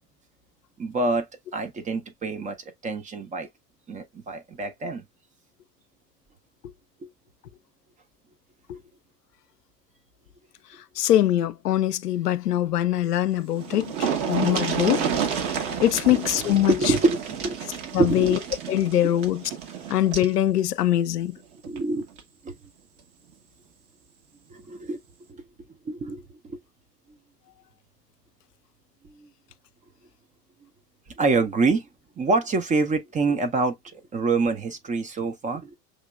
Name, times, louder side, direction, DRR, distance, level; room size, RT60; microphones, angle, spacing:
voice 1, 0.8-2.6 2.8-3.5 3.9-5.1 7.0-7.1 8.7-8.8 13.8-13.9 16.1-18.4 21.7-22.1 22.4-22.6 24.5-25.0 25.3-25.4 25.8-26.6 29.0-29.3 31.1-31.9 32.2-35.8, right 3 dB, 15° right, 0.6 m, -26 dB
voice 2, 11.0-15.1 15.8-16.7 17.9-18.4 18.7-19.4 19.9-21.4, left 12 dB, 75° left, 0.6 m, -22 dB
sound 1, 13.2-13.3 13.5-20.3 21.6-21.8 22.2-22.3, right 7 dB, 50° right, 1.3 m, -30 dB
6.3 x 2.9 x 2.2 m
figure-of-eight pair, 80°, 48 cm